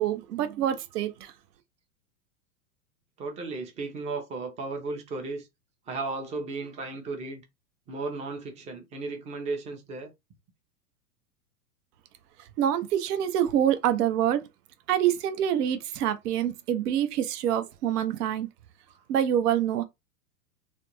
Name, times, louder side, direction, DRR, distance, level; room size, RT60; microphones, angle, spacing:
voice 1, 0.0-1.3 12.6-14.5 14.9-18.5 19.1-19.8, right 10 dB, 70° right, 0.6 m, -26 dB
voice 2, 3.2-5.5 5.9-7.4 7.9-10.1 18.9-19.0, right 3 dB, 15° right, 0.5 m, -35 dB
2.5 x 2.1 x 3.0 m
hypercardioid pair, 115°, 49 cm